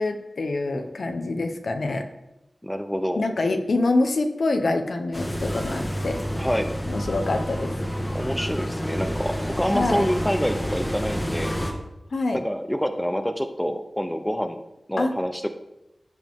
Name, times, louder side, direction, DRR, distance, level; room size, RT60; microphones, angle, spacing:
voice 1, 0.0-2.1 3.2-6.2 6.9-7.7 9.7-10.1 12.1-12.4 15.0-15.1, left 2 dB, 85° left, 6 dB, 0.9 m, -25 dB
voice 2, 2.6-3.2 6.4-6.7 8.1-11.6 12.3-14.6 14.9-15.5, equal, 5° left, 7 dB, 0.7 m, -27 dB
sound 1, 5.1-11.7, equal, 20° left, 1.5 m, -29 dB
15.0 x 5.2 x 3.6 m, 0.91 s
wide cardioid pair, 75°, 0 cm